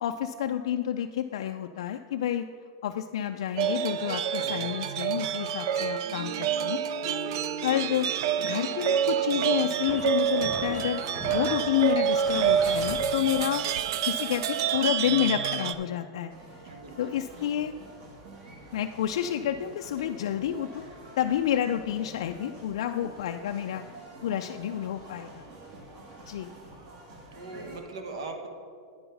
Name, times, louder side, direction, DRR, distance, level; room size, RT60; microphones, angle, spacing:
voice 1, 0.0-2.4 2.8-6.8 7.6-8.1 8.4-13.6 14.1-16.3 17.0-17.7 18.7-20.8 21.2-23.8 24.2-25.5 26.3-26.5, left 11 dB, 70° left, 5 dB, 0.3 m, -29 dB
sound 1, 3.6-15.7, right 8 dB, 50° right, 0.4 m, -28 dB
sound 2, 7.0-13.0, left 1 dB, 5° left, 1.2 m, -42 dB
sound 3, 16.3-27.8, right 2 dB, 35° right, 1.5 m, -47 dB
voice 2, 16.6-17.1 27.3-28.5, right 3 dB, 75° right, 4 dB, 1.3 m, -40 dB
9.3 x 5.5 x 5.8 m, 2.2 s
supercardioid pair, 165°, 3 cm